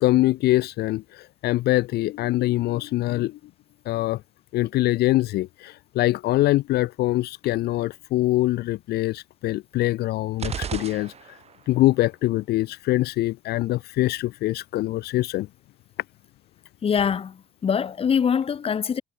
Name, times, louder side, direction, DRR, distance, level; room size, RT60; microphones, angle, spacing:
voice 1, 0.0-3.4 3.9-4.2 4.5-11.4 11.7-15.5, left 17 dB, 70° left, 0.7 m, -24 dB
sound 1, 10.4-11.7, right 7 dB, 40° right, 1.3 m, -33 dB
voice 2, 16.8-19.0, left 7 dB, 35° left, 1.2 m, -24 dB
cardioid pair, 110°, 17 cm